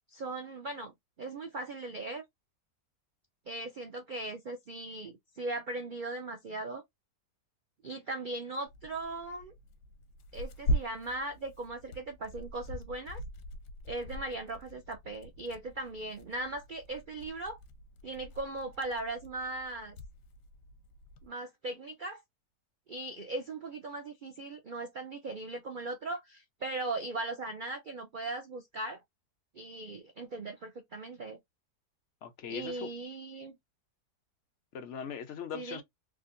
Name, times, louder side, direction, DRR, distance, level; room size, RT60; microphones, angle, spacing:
voice 1, 0.1-2.2 3.5-6.8 7.8-9.5 10.3-13.2 13.9-17.6 18.0-20.0 21.2-22.2 22.9-29.0 29.5-31.4 32.5-33.6 35.5-35.8, right 2 dB, 75° right, 0.4 m, -39 dB
Tearing, 8.7-21.3, equal, 90° left, 1.3 m, -41 dB
voice 2, 32.2-32.9 34.7-35.8, left 7 dB, 55° left, 0.9 m, -40 dB
3.6 x 2.6 x 2.5 m
omnidirectional pair, 1.7 m